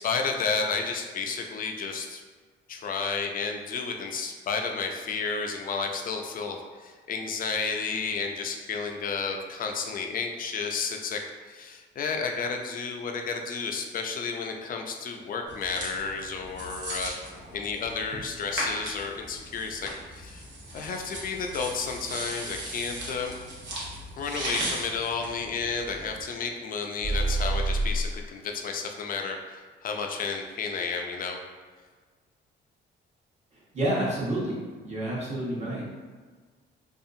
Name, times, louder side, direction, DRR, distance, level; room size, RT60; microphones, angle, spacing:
voice 1, 0.0-2.2 2.7-20.4 20.7-23.3 24.2-31.4, left 5 dB, 45° left, 3 dB, 0.4 m, -32 dB
sound 1, 15.5-26.2, right 1 dB, 65° right, 0.9 m, -37 dB
sound 2, 27.0-28.2, right 2 dB, 85° right, 0.5 m, -26 dB
voice 2, 33.7-35.8, right 1 dB, 35° right, -7 dB, 1.1 m, -29 dB
2.7 x 2.4 x 2.5 m, 1.5 s
cardioid pair, 90°, 20 cm